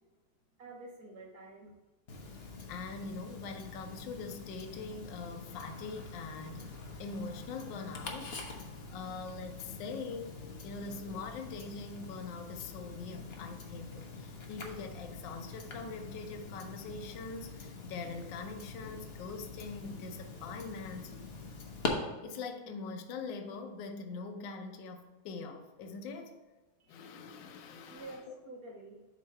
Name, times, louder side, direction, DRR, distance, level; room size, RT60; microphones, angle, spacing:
voice 1, 0.6-1.8 26.8-27.0 27.9-29.1, right 2 dB, 60° right, 0 dB, 1.0 m, -49 dB
Tick-tock, 2.1-21.9, left 4 dB, 50° left, 0.7 m, -45 dB
voice 2, 2.7-8.4 8.9-10.3 10.6-21.1 21.8-26.4 26.9-28.3, left 4 dB, 70° left, 4 dB, 1.3 m, -43 dB
7.6 x 3.1 x 5.4 m, 1.2 s
omnidirectional pair, 2.2 m